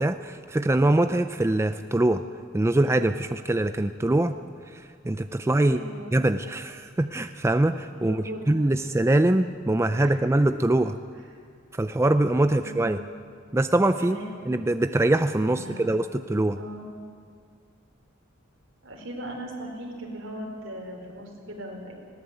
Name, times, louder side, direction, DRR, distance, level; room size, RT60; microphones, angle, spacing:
voice 1, 0.0-2.2 2.5-4.4 4.7-5.8 6.1-11.0 11.7-13.0 13.5-14.2 14.5-16.6, right 1 dB, 15° right, 9 dB, 0.4 m, -23 dB
voice 2, 5.6-6.1 8.0-8.8 9.9-10.4 12.5-12.9 14.0-14.5 15.5-15.8 16.6-16.8 18.8-21.9, right 1 dB, 65° right, 1 dB, 4.4 m, -38 dB
19.5 x 17.5 x 8.2 m, 2.2 s
head